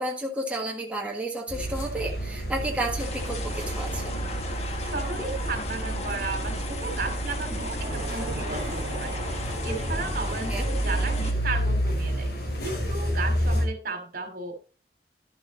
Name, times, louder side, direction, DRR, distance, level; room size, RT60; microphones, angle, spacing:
voice 1, 0.0-4.1 10.5-10.6, right 1 dB, 10° right, -2 dB, 1.6 m, -31 dB
sound 1, 1.5-13.7, right 1 dB, 70° left, 4.7 m, -30 dB
sound 2, 3.0-11.3, left 3 dB, 40° left, 1.6 m, -37 dB
voice 2, 4.8-9.2 9.6-12.3 12.6-14.6, right 3 dB, 55° right, 6 dB, 2.6 m, -34 dB
sound 3, 7.8-10.7, right 1 dB, 35° right, 2.8 m, -39 dB
11.5 x 7.8 x 4.0 m, 0.35 s
head